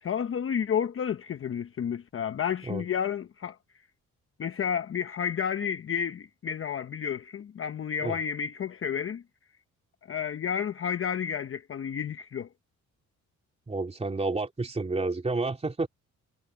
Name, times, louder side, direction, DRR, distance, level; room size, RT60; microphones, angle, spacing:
voice 1, 0.0-3.6 4.4-9.2 10.1-12.5, left 8 dB, 45° left, 1.0 m, -31 dB
voice 2, 13.7-15.9, right 3 dB, 20° right, 3.2 m, -30 dB
cardioid pair, 90°, 30 cm